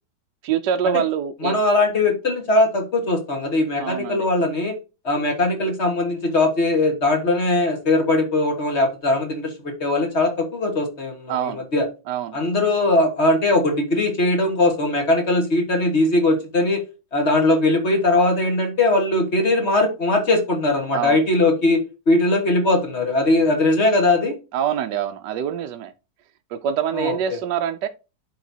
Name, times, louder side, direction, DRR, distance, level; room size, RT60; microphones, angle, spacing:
voice 1, 0.4-1.6 3.8-4.3 11.3-11.6 12.1-12.4 20.9-21.2 24.5-25.9 26.5-27.9, right 8 dB, 70° right, 1.1 m, -25 dB
voice 2, 1.4-4.7 5.0-11.8 12.3-16.8 17.1-21.8 22.1-24.3 26.9-27.4, left 2 dB, 40° left, 1.7 m, -20 dB
11.5 x 3.9 x 2.7 m
omnidirectional pair, 2.0 m